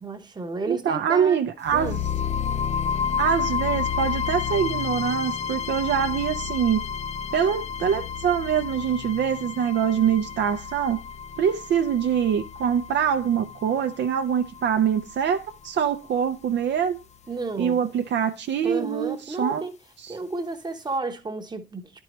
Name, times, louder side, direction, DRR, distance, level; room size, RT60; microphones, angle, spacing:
voice 1, 0.0-1.4 1.7-2.0 17.3-17.8 18.6-19.7 20.1-22.0, right 3 dB, 20° right, 1.0 m, -32 dB
voice 2, 0.7-2.0 3.2-6.8 7.3-11.0 11.4-17.0 17.6-19.6 20.0-20.2, right 8 dB, 65° right, 0.6 m, -24 dB
sound 1, 1.7-15.7, left 7 dB, 35° left, 0.4 m, -31 dB
10.5 x 4.5 x 3.0 m
cardioid pair, 90°, 20 cm